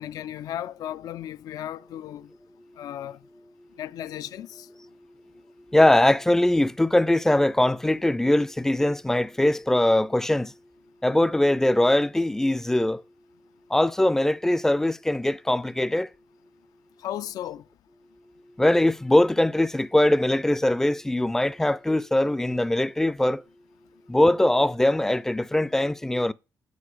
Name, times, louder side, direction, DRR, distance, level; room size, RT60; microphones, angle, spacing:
voice 1, 0.0-2.3 2.8-3.2 3.8-4.7 17.0-17.6, left 11 dB, 85° left, 0.4 m, -35 dB
voice 2, 5.7-10.5 11.0-13.0 13.7-16.1 18.6-23.4 24.1-26.3, left 1 dB, 5° left, 0.3 m, -21 dB
8.3 x 4.9 x 4.8 m
cardioid pair, 115°, 6 cm